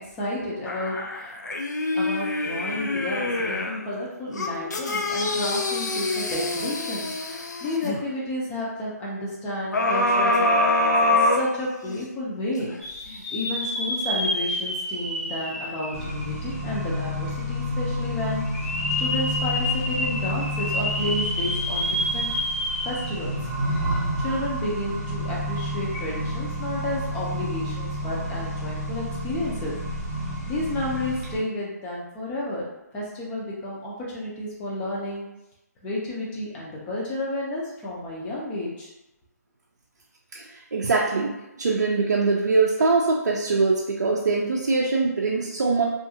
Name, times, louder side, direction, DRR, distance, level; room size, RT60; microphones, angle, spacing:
voice 1, 0.1-1.3 1.9-22.3 22.8-23.3 24.2-29.8 30.2-32.6 32.9-35.3 35.8-38.9, left 1 dB, 10° left, -5 dB, 0.4 m, -31 dB
sound 1, 0.7-3.8 4.3-8.0 9.7-12.1 12.6-12.7, left 2 dB, 90° left, 0.5 m, -25 dB
sound 2, 12.8-16.8 17.3-17.4 18.4-23.4 23.8-23.9 25.8-26.0, left 1 dB, 60° left, 1.0 m, -29 dB
Accelerating revving vroom, 15.9-31.4, equal, 30° right, 0.7 m, -30 dB
voice 2, 40.3-45.8, right 3 dB, 75° right, -3 dB, 0.4 m, -23 dB
2.6 x 2.4 x 2.6 m, 0.92 s
hypercardioid pair, 160°, 9 cm